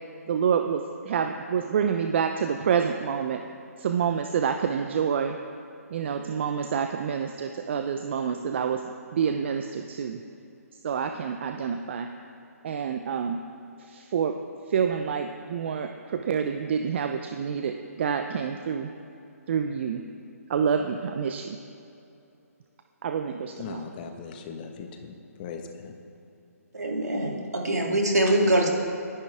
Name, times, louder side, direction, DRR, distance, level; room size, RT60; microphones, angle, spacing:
voice 1, 0.3-3.4 3.8-5.4 5.9-10.2 10.8-12.1 12.6-13.4 13.8-14.4 14.7-18.9 19.5-20.0 20.5-21.6 23.0-23.8, right 7 dB, 45° right, 6 dB, 0.7 m, -27 dB
voice 2, 23.6-26.0, left 6 dB, 35° left, 4 dB, 1.4 m, -39 dB
voice 3, 26.7-28.7, right 1 dB, 85° right, 0 dB, 2.8 m, -23 dB
26.0 x 10.0 x 3.6 m, 2.7 s
hypercardioid pair, 145°, 9 cm